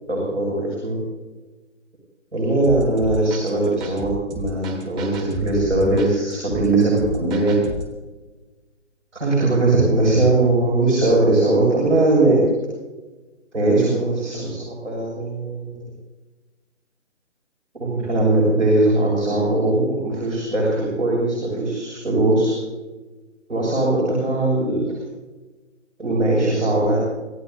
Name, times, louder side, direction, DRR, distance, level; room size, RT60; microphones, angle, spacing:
voice 1, 0.1-1.0 2.3-4.1 4.4-7.6 9.1-12.4 13.5-15.8 17.7-22.5 23.5-24.8 26.0-27.0, right 2 dB, 75° right, -4 dB, 7.1 m, -20 dB
sound 1, 2.6-8.0, right 1 dB, 10° right, 1.4 m, -33 dB
27.0 x 16.0 x 2.8 m, 1.2 s
figure-of-eight pair, 145°, 37 cm